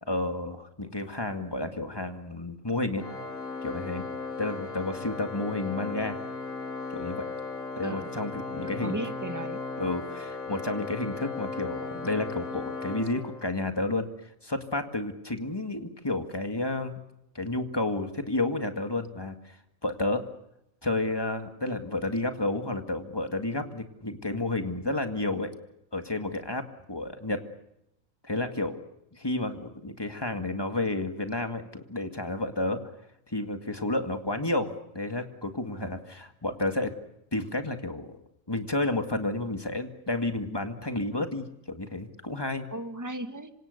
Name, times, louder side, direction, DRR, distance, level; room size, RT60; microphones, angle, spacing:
voice 1, 0.0-3.0 3.6-4.1 4.4-6.2 6.9-7.3 7.8-9.0 9.8-14.1 14.4-17.0 17.3-20.3 20.8-25.5 25.9-27.4 28.2-28.8 29.1-32.8 33.3-36.9 37.3-38.2 38.5-42.7, left 2 dB, 20° left, 6 dB, 2.1 m, -31 dB
Organ, 3.0-13.8, left 3 dB, 85° left, 2.7 m, -37 dB
voice 2, 8.6-9.6 24.8-24.9 42.7-43.5, right 2 dB, 15° right, 7 dB, 1.7 m, -36 dB
26.0 x 26.0 x 6.7 m, 0.83 s
omnidirectional pair, 1.4 m